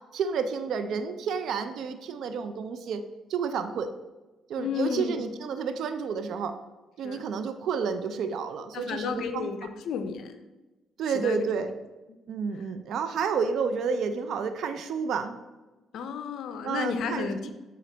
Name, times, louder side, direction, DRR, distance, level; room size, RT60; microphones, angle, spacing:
voice 1, 0.1-3.0 3.3-3.9 4.5-6.6 7.0-9.5 11.0-11.7 12.3-15.4 16.6-17.5, right 6 dB, 75° right, 9 dB, 0.4 m, -30 dB
voice 2, 4.6-5.3 7.0-7.3 8.7-10.4 11.1-11.4 15.9-17.5, left 6 dB, 75° left, 8 dB, 0.5 m, -32 dB
7.5 x 3.8 x 3.3 m, 1.1 s
cardioid pair, 90°, 0 cm